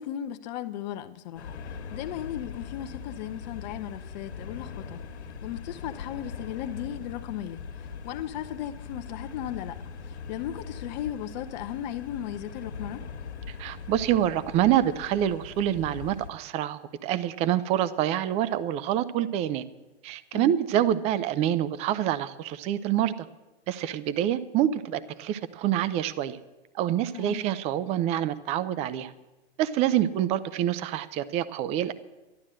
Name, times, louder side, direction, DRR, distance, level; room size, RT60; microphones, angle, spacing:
voice 1, 0.0-1.6 1.9-5.0 5.4-9.8 10.0-13.0 20.3-20.5 27.1-27.4, left 11 dB, 40° left, 0.8 m, -36 dB
sound 1, 1.4-16.3, left 5 dB, 75° left, 1.6 m, -41 dB
voice 2, 13.6-19.6 20.0-23.1 23.7-26.4 26.8-29.1 29.6-31.9, right 11 dB, 20° right, 0.5 m, -26 dB
11.5 x 11.5 x 7.6 m
hypercardioid pair, 125°, 33 cm